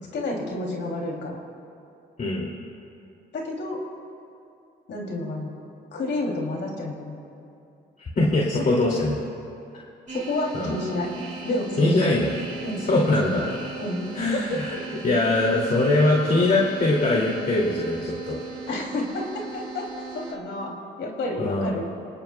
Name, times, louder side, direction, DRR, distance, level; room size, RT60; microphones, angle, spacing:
voice 1, 0.1-1.4 3.3-3.8 4.9-5.5 5.9-7.1 8.6-8.7 10.1-12.0 12.6-13.5 13.8-14.1 14.3-15.0 18.7-21.8, left 2 dB, 65° left, -1 dB, 3.0 m, -30 dB
voice 2, 2.2-2.5 8.0-9.2 9.7-9.8 10.5-10.7 11.8-12.4 12.9-13.4 14.1-18.4 21.4-21.8, left 2 dB, 45° left, -3 dB, 2.5 m, -22 dB
sound 1, 10.1-20.3, right 5 dB, 35° right, 2.3 m, -39 dB
27.5 x 18.5 x 2.3 m, 2.6 s
cardioid pair, 90°, 20 cm